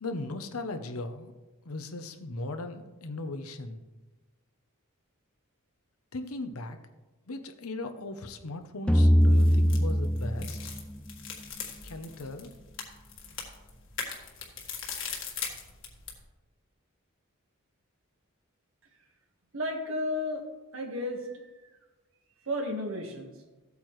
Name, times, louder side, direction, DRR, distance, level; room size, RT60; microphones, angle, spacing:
voice 1, 0.0-1.3 1.6-3.8 6.1-6.8 7.3-10.7 11.8-12.5, left 2 dB, 85° left, 8 dB, 0.9 m, -38 dB
sound 1, 8.9-11.8, equal, 5° left, 0.4 m, -23 dB
sound 2, 9.2-16.2, left 6 dB, 60° left, 1.6 m, -40 dB
voice 2, 19.5-20.4 20.7-21.7 22.4-23.3, left 1 dB, 65° right, 2 dB, 1.6 m, -33 dB
14.5 x 8.3 x 3.2 m, 1.2 s
head